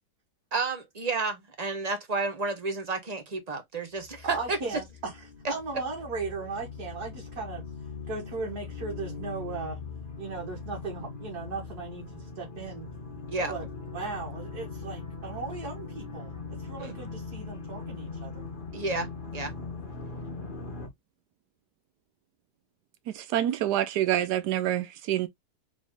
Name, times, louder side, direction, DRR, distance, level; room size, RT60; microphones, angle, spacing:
voice 1, 0.5-4.6 13.3-13.5 16.8-17.0 18.7-19.1 19.3-19.5, right 3 dB, 30° right, 0.9 m, -31 dB
sound 1, 4.0-20.9, left 4 dB, 35° left, 1.3 m, -40 dB
voice 2, 4.2-7.6 8.1-9.8 10.2-12.9 13.5-13.7 13.9-18.4, right 4 dB, 70° right, 2.1 m, -37 dB
voice 3, 23.1-25.3, right 12 dB, 85° right, 1.2 m, -27 dB
4.0 x 3.4 x 3.5 m
omnidirectional pair, 1.7 m